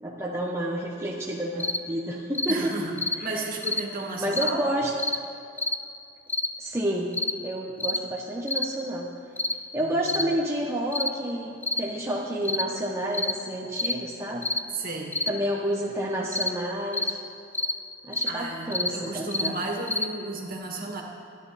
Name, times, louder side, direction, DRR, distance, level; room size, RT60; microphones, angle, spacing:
voice 1, 0.0-2.7 4.2-4.9 6.6-7.1 7.4-9.1 9.7-14.5 15.3-17.2 18.0-19.6, right 1 dB, 15° right, -3 dB, 1.0 m, -29 dB
sound 1, 1.6-1.8 2.3-2.6 3.0-3.2 3.6-3.8 4.3-4.5 5.0-5.2 5.6-5.8 6.3-6.5 7.1-7.3 7.8-8.0 8.5-8.7 9.4-9.6 10.0-10.3 10.9-11.1 11.6-11.8 12.4-12.7 13.1-13.4 13.8-14.0 14.4-14.6 15.1-15.3 16.3-16.5 16.9-17.1 17.5-17.8 18.1-18.3 18.7-18.9 19.3-19.5 19.9-20.1, left 2 dB, 10° left, 0.5 m, -28 dB
voice 2, 2.5-4.7 9.8-10.3 14.7-15.2 18.3-21.0, right 2 dB, 45° right, 0 dB, 2.2 m, -34 dB
25.5 x 9.4 x 4.3 m, 2.5 s
head